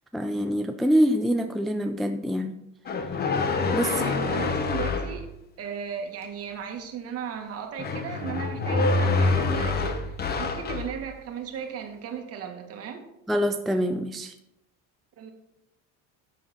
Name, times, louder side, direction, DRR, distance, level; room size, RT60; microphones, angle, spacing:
voice 1, 0.1-2.5 3.7-3.9 13.3-14.3, equal, ahead, 6 dB, 0.4 m, -25 dB
sound 1, 2.9-5.2 7.8-10.9, left 3 dB, 30° left, 1.1 m, -26 dB
voice 2, 3.9-5.3 5.6-10.0 10.3-13.0 15.2-15.3, right 7 dB, 45° right, 4 dB, 2.0 m, -36 dB
12.0 x 7.3 x 4.4 m, 0.83 s
cardioid pair, 145°, 33 cm